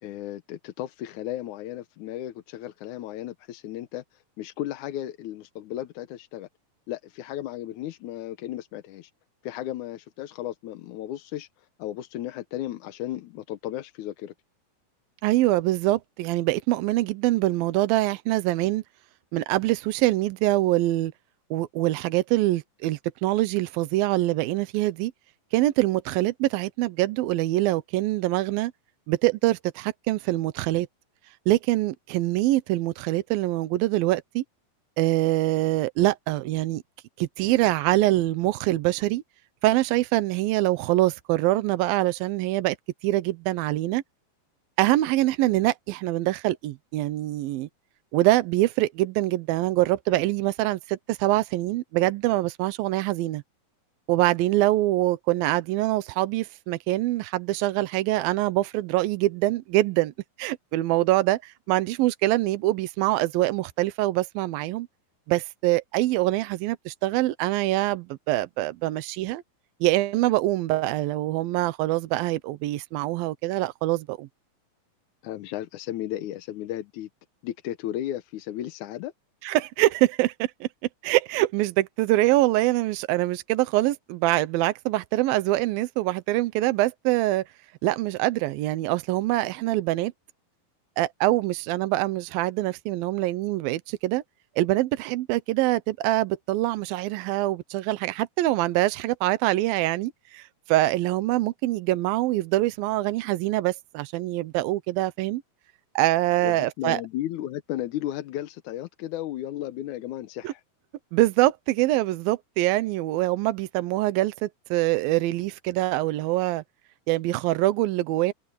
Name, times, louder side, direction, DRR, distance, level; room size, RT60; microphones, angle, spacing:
voice 1, 0.0-6.5 6.9-9.1 9.4-11.5 11.8-14.3 75.2-77.1 77.4-79.1 106.4-110.6, left 13 dB, 70° left, 2.0 m, -34 dB
voice 2, 15.2-18.8 19.3-21.1 21.5-25.1 25.5-28.7 29.1-30.9 31.5-34.4 35.0-36.8 37.2-39.2 39.6-42.8 43.0-44.0 44.8-47.7 48.1-53.4 54.1-60.1 60.4-64.9 65.3-69.4 69.8-74.3 79.4-80.7 81.0-87.5 87.8-90.1 91.0-94.2 94.6-105.4 106.0-107.0 110.4-110.5 111.1-116.6 117.1-118.3, right 17 dB, 85° right, 2.6 m, -24 dB
omnidirectional pair, 4.2 m